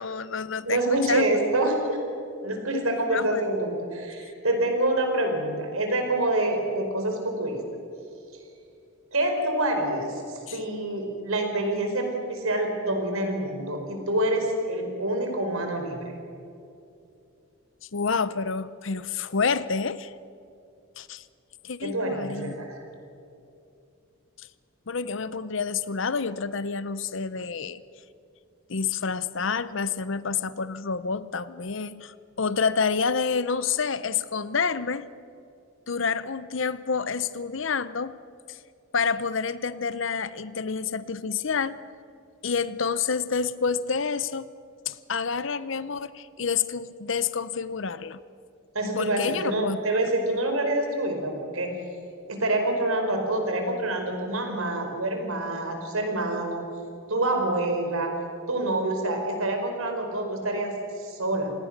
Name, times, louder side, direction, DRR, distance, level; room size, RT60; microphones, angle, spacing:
voice 1, 0.0-1.4 3.1-3.4 10.5-10.6 17.9-20.1 21.0-21.2 21.6-22.5 24.9-27.8 28.7-35.1 35.9-38.2 38.5-38.6 38.9-41.8 42.4-44.5 44.9-48.2 49.0-49.8, left 5 dB, 65° left, 15 dB, 0.7 m, -28 dB
voice 2, 0.6-2.0 2.4-7.6 9.1-16.1 21.8-22.7 48.7-51.7 52.3-56.6 57.1-58.1 58.5-61.5, right 1 dB, 85° right, 4 dB, 4.6 m, -27 dB
27.0 x 18.5 x 6.6 m, 2.6 s
head